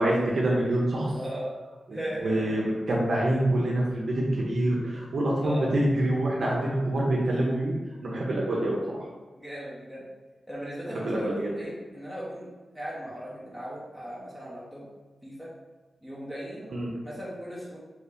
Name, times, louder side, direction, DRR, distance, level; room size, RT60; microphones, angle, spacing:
voice 1, 0.0-1.1 1.9-9.1 10.9-11.5 16.7-16.9, right 1 dB, 70° right, -4 dB, 0.7 m, -26 dB
voice 2, 1.1-1.5 1.9-2.6 5.4-5.7 9.4-10.1 10.5-14.9 15.2-15.5 16.0-16.7 17.0-17.8, equal, 5° left, -7 dB, 0.9 m, -37 dB
3.0 x 2.7 x 3.4 m, 1.3 s
cardioid pair, 80°, 0 cm